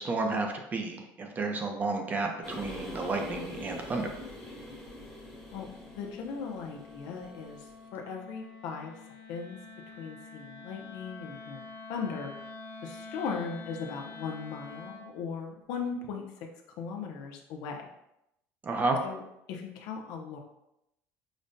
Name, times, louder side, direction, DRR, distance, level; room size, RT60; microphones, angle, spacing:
voice 1, 0.0-4.1 18.6-19.0, right 3 dB, 25° right, 3 dB, 0.5 m, -31 dB
sound 1, 2.4-7.8, left 1 dB, 5° left, 1.0 m, -45 dB
Wind instrument woodwind instrument, 3.6-15.1, left 3 dB, 45° left, 1.4 m, -48 dB
voice 2, 5.5-7.7 7.9-8.9 9.3-9.6 10.0-12.3 12.8-16.5 16.8-17.9 19.0-19.2 19.5-20.4, left 5 dB, 70° left, 2 dB, 0.6 m, -38 dB
5.0 x 2.1 x 2.6 m, 0.84 s
cardioid pair, 145°, 7 cm